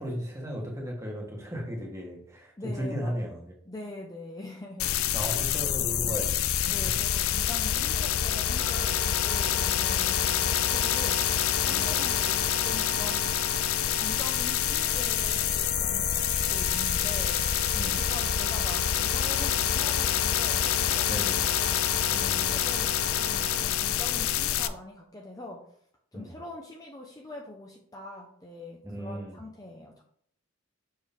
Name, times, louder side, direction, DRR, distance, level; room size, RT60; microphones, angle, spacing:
voice 1, 0.0-3.5 5.1-6.8 9.5-9.7 11.7-12.1 17.7-18.1 21.1-21.4 22.1-22.6 26.1-26.3 28.8-29.4, equal, 15° right, -1 dB, 1.4 m, -36 dB
voice 2, 2.6-3.4 3.6-5.4 5.6-6.2 6.7-21.9 22.2-25.7 26.1-30.0, left 1 dB, 15° left, 0 dB, 0.6 m, -44 dB
sound 1, 4.8-24.7, left 10 dB, 80° left, 0.4 m, -27 dB
Wind instrument woodwind instrument, 8.6-23.6, right 2 dB, 75° right, 1.1 m, -40 dB
Bowed string instrument, 14.6-18.3, left 1 dB, 35° right, 0.8 m, -47 dB
6.4 x 4.6 x 3.6 m, 0.63 s
head